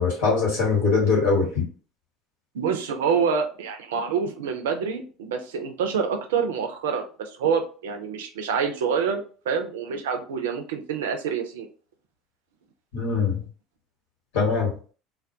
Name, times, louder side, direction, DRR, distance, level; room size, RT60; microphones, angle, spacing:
voice 1, 0.0-1.6 12.9-13.4 14.3-14.7, left 4 dB, 70° left, -2 dB, 1.1 m, -22 dB
voice 2, 2.5-11.7, right 6 dB, 75° right, 6 dB, 0.4 m, -27 dB
2.2 x 2.2 x 2.6 m, 0.39 s
hypercardioid pair, 70°, 0 cm